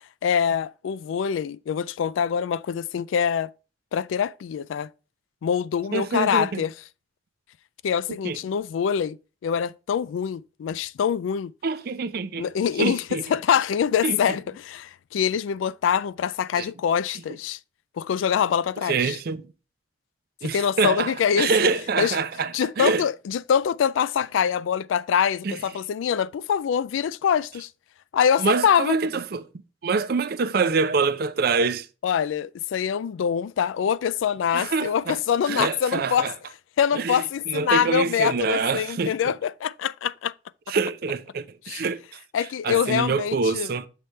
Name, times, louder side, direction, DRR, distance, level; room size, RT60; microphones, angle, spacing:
voice 1, 0.2-3.5 3.9-4.9 5.4-6.7 7.8-9.2 9.4-11.5 12.4-17.6 18.0-19.2 20.4-21.5 22.0-22.2 22.5-27.7 28.1-29.0 32.0-36.3 36.8-40.3 41.7-41.8 42.3-43.7, left 8 dB, 85° left, 0.3 m, -24 dB
voice 2, 5.9-6.6 8.2-8.4 11.6-12.5 12.8-13.2 14.0-14.2 16.6-16.7 18.9-19.5 20.4-23.1 25.4-25.6 28.4-29.5 29.8-31.9 34.5-35.2 35.5-36.3 36.9-39.3 40.7-42.0 42.6-43.9, right 4 dB, 50° right, 0.5 m, -25 dB
6.5 x 3.2 x 5.5 m
head